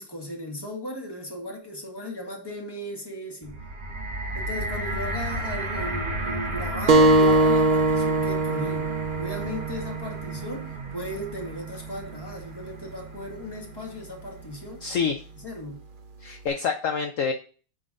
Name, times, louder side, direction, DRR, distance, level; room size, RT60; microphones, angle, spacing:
voice 1, 0.0-3.6 4.3-8.9 9.2-14.8 15.4-15.8, equal, 15° left, 1.7 m, -36 dB
sound 1, 3.4-13.7 14.4-14.5, right 1 dB, 35° right, 1.3 m, -33 dB
sound 2, 6.9-12.0, right 2 dB, 80° right, 0.4 m, -23 dB
voice 2, 14.8-15.2 16.2-17.3, left 6 dB, 65° left, 0.8 m, -27 dB
9.8 x 3.8 x 3.8 m
omnidirectional pair, 2.0 m